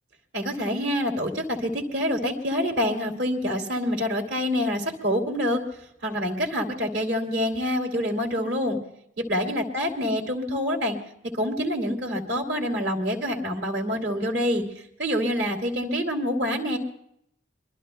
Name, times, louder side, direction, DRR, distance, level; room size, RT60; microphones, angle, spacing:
voice 1, 0.3-5.6 6.0-8.8 9.2-11.0 11.3-14.6 15.0-16.8, equal, 60° right, 2 dB, 2.8 m, -26 dB
25.5 x 22.5 x 2.3 m, 0.73 s
head